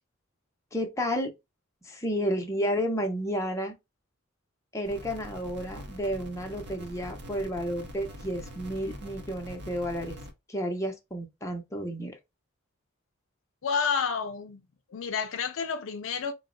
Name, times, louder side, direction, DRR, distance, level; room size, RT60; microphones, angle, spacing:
voice 1, 0.7-1.3 1.8-3.8 4.7-10.2 10.5-12.1, equal, 15° left, 0.7 m, -31 dB
sound 1, 4.8-10.3, equal, 55° right, 0.7 m, -44 dB
voice 2, 13.6-14.6 14.9-16.3, left 6 dB, 70° left, 0.4 m, -30 dB
3.8 x 2.1 x 3.7 m
head